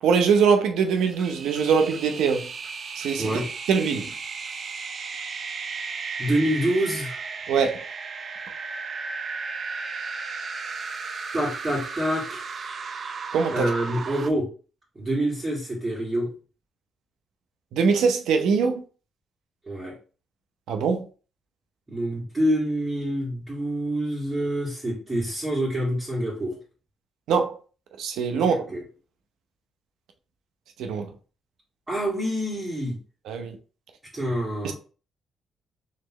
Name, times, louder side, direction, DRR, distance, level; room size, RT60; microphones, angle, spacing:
voice 1, 0.0-2.5 3.0-3.3 3.7-4.1 7.5-7.8 13.3-13.7 17.7-18.8 20.7-21.1 27.3-27.6 28.0-28.6 30.8-31.1 33.3-33.6 34.6-34.7, right 6 dB, 85° right, 0.7 m, -22 dB
sound 1, 0.9-14.3, right 4 dB, 45° right, 0.5 m, -35 dB
voice 2, 6.2-7.2 11.3-12.4 13.5-14.5 15.0-16.3 19.7-19.9 21.9-26.6 28.3-28.4 28.7-28.8 31.9-33.0 34.1-34.7, right 1 dB, 25° right, 1.9 m, -26 dB
4.2 x 3.1 x 3.0 m
cardioid pair, 90°, 0 cm